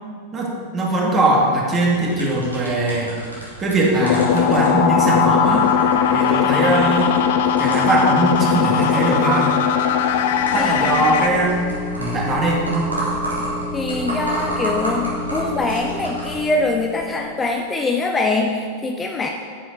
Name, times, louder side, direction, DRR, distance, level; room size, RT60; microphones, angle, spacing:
voice 1, 0.3-3.1 3.6-5.6 6.1-7.1 7.6-9.5 10.5-11.7 12.0-12.7, right 2 dB, 25° right, -2 dB, 2.3 m, -20 dB
sound 1, 1.7-16.3, right 1 dB, 85° right, 3.0 m, -32 dB
sound 2, 4.0-11.3, left 8 dB, 55° left, 0.6 m, -18 dB
sound 3, 9.7-17.5, left 1 dB, 45° right, 2.6 m, -32 dB
voice 2, 10.6-11.0 13.7-19.3, left 3 dB, 15° left, 2 dB, 0.7 m, -23 dB
9.3 x 9.1 x 4.7 m, 2.1 s
figure-of-eight pair, 90°, 0 cm